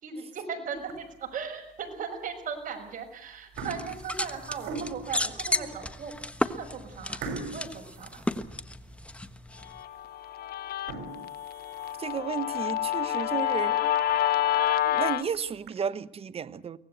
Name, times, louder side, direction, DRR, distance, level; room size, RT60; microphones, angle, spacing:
voice 1, 0.0-6.1 6.4-7.2 7.5-8.2, right 6 dB, 50° right, 6.2 m, -38 dB
sound 1, 0.8-1.3 1.9-2.0 2.8-3.1 3.3-5.2 5.8-5.9 6.3-6.4 7.2-9.0 9.4-9.5 10.0-10.1 10.7-12.3 12.8-12.9 13.3-13.4 13.7-13.8 14.1-14.2 15.1-15.7, right 4 dB, 80° right, 5.8 m, -41 dB
sound 2, 3.5-9.8, left 1 dB, 5° left, 1.3 m, -34 dB
Guitar, 9.7-15.2, left 12 dB, 65° left, 1.1 m, -28 dB
voice 2, 12.0-13.9 14.9-16.8, right 7 dB, 35° right, 1.0 m, -33 dB
23.5 x 18.0 x 8.1 m
cardioid pair, 110°, 17 cm